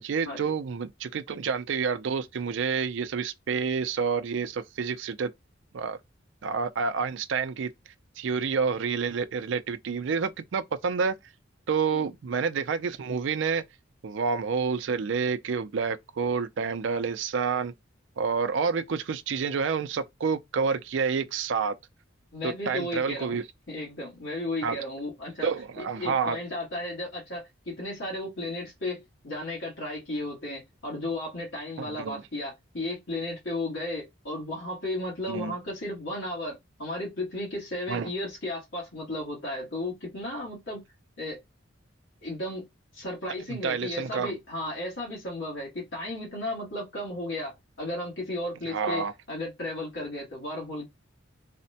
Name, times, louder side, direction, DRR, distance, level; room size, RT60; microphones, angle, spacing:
voice 1, 0.0-5.3 5.7-6.0 6.4-7.7 8.2-11.2 11.7-13.6 14.0-17.7 18.2-21.7 22.4-23.4 24.6-24.8 25.4-26.4 31.8-32.2 35.3-35.5 37.9-38.1 43.5-44.4 48.7-49.1, right 5 dB, 70° right, 0.4 m, -28 dB
voice 2, 22.3-23.4 23.7-25.5 25.8-40.8 41.2-41.4 42.2-42.7 42.9-50.9, left 1 dB, 75° left, 1.5 m, -34 dB
4.0 x 2.1 x 2.7 m
head